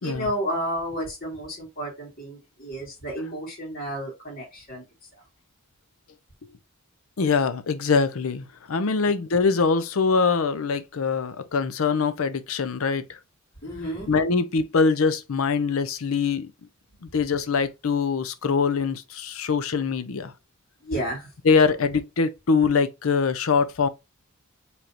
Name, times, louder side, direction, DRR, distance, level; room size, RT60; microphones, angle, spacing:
voice 1, 0.0-4.8 9.0-9.1 13.6-14.1 20.8-21.3, equal, 45° left, 2.2 m, -31 dB
voice 2, 7.2-13.2 14.1-16.5 17.0-20.3 21.4-23.9, left 5 dB, 75° left, 0.6 m, -23 dB
4.9 x 3.3 x 2.8 m
head